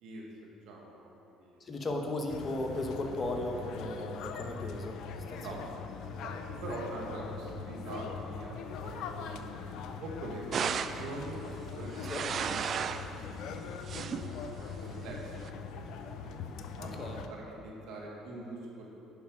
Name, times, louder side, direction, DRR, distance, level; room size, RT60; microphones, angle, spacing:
voice 1, 0.0-1.6 5.3-5.6 6.1-6.4 6.6-9.6 10.0-10.5 10.9-11.4 11.7-12.7 13.2-13.6 13.9-14.3 14.6-16.4 16.8-18.9, right 2 dB, 70° right, -2 dB, 1.8 m, -44 dB
voice 2, 1.7-5.0 5.3-5.5 12.1-12.3 16.8-17.2, left 2 dB, 35° left, 3 dB, 1.1 m, -35 dB
sound 1, 2.3-17.3, left 5 dB, 70° left, 0.5 m, -42 dB
sound 2, 10.5-11.1 11.8-13.1 13.6-14.3 15.1-15.5, right 7 dB, 50° right, 0.4 m, -34 dB
10.5 x 5.4 x 4.8 m, 3.0 s
supercardioid pair, 70°, 0 cm